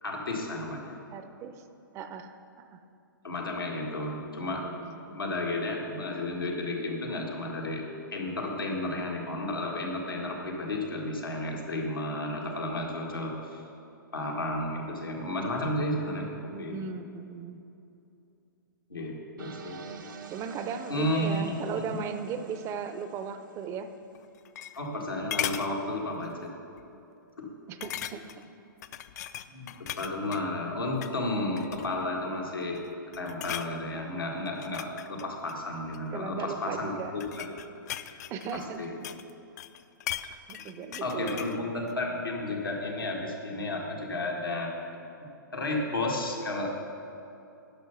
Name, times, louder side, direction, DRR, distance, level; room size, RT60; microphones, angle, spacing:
voice 1, 0.0-1.0 3.2-4.8 5.1-7.9 8.1-13.6 14.1-16.8 18.9-19.8 20.9-21.5 21.9-22.0 24.8-26.5 27.4-27.5 29.5-32.8 33.2-37.5 38.5-39.0 41.0-44.8 45.2-46.7, left 2 dB, 90° left, -1 dB, 1.8 m, -32 dB
voice 2, 1.1-1.6 1.9-2.8 4.6-5.2 16.5-17.6 20.3-23.9 27.7-28.4 36.1-37.1 38.3-39.1 40.5-41.4, right 6 dB, 25° right, 9 dB, 0.5 m, -37 dB
sound 1, 19.4-24.3, right 5 dB, 65° right, 0.8 m, -47 dB
sound 2, 24.1-25.0 25.3-25.7 26.2-26.4 26.8-26.9 27.8-28.4 28.8-30.4 30.9-31.2 31.6-32.1 32.6-32.9 33.1-33.7 34.4-36.1 36.9-39.3 39.6-41.6 41.9-42.0, left 11 dB, 50° left, 0.4 m, -38 dB
11.0 x 5.7 x 5.7 m, 2.7 s
figure-of-eight pair, 120°, 11 cm